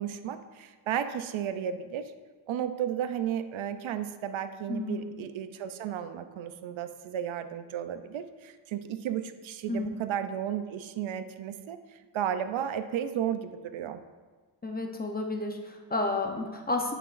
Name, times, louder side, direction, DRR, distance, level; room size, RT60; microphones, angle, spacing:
voice 1, 0.0-2.1 2.5-14.0, right 9 dB, 70° right, 10 dB, 0.6 m, -33 dB
voice 2, 4.7-5.1 9.7-9.9 14.6-16.9, left 2 dB, 20° left, 2 dB, 0.8 m, -31 dB
9.9 x 5.8 x 2.5 m, 1.4 s
cardioid pair, 85°, 48 cm